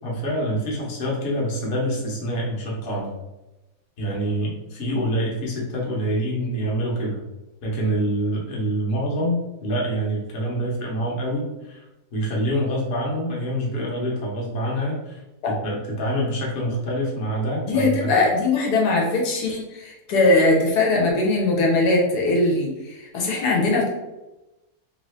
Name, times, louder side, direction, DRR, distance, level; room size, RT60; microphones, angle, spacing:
voice 1, 0.0-3.1 4.0-7.2 7.6-11.8 12.1-15.2 15.6-18.1, right 1 dB, 45° left, -4 dB, 1.0 m, -26 dB
voice 2, 17.7-23.9, left 2 dB, 80° left, -1 dB, 1.3 m, -20 dB
3.1 x 2.6 x 3.2 m, 1.0 s
omnidirectional pair, 1.7 m